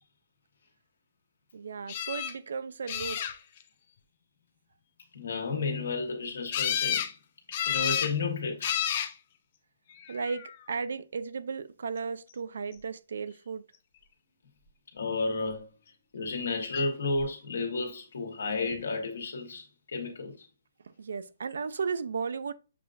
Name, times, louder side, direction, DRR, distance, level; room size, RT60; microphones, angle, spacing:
voice 1, 1.5-3.2 10.1-13.6 21.0-22.5, right 5 dB, 65° right, 0.3 m, -35 dB
sound 1, 1.9-2.3 2.9-3.6 6.5-7.1 7.5-8.1 8.6-9.1 10.0-10.5 16.7-16.8 17.2-17.3, left 9 dB, 30° left, 0.3 m, -30 dB
voice 2, 5.1-7.0 7.7-8.8 14.9-15.7 16.1-20.5, left 3 dB, 70° left, 1.2 m, -32 dB
6.7 x 2.4 x 2.5 m
hypercardioid pair, 170°, 0 cm